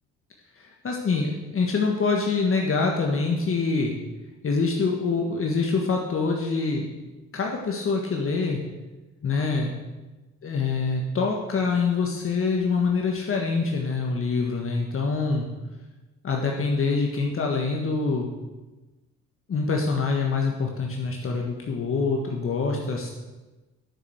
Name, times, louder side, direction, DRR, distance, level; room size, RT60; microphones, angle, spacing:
voice 1, 0.6-3.9 4.4-6.9 7.3-8.6 9.2-9.7 10.4-15.5 16.2-18.3 19.5-23.1, left 4 dB, 45° left, 0 dB, 1.6 m, -25 dB
9.9 x 6.9 x 7.9 m, 1.2 s
cardioid pair, 90°, 30 cm